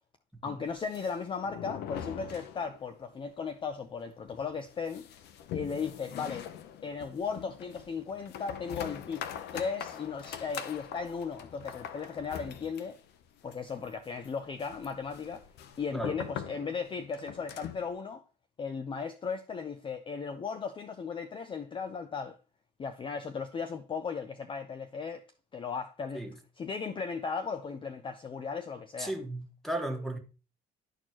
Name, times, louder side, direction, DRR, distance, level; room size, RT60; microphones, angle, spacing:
voice 1, 0.4-5.1 5.5-6.5 6.8-9.2 9.5-13.0 13.4-15.4 15.8-18.2 18.6-22.4 22.8-25.2 25.5-26.2 26.6-29.1, left 5 dB, 30° left, 0.6 m, -36 dB
sound 1, 0.7-3.1 3.3-3.4 3.7-3.8 4.3-17.9, left 9 dB, 75° left, 0.7 m, -43 dB
voice 2, 29.0-30.2, right 1 dB, ahead, 1.6 m, -35 dB
12.5 x 4.4 x 2.9 m
cardioid pair, 110°, 17 cm